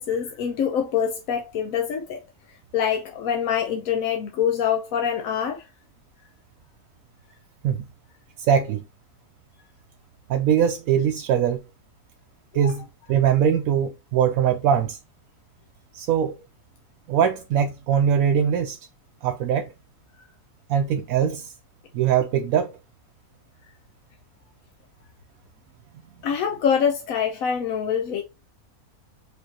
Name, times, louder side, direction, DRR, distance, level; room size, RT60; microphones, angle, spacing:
voice 1, 0.0-2.2 2.7-5.6 12.6-12.7 26.2-28.2, left 8 dB, 70° left, 1.1 m, -25 dB
voice 2, 8.5-8.8 10.3-11.6 12.5-15.0 15.9-16.4 17.1-18.8 19.2-19.7 20.7-21.5 21.9-22.7, right 8 dB, 75° right, 1.0 m, -21 dB
5.0 x 3.6 x 2.8 m
omnidirectional pair, 1.6 m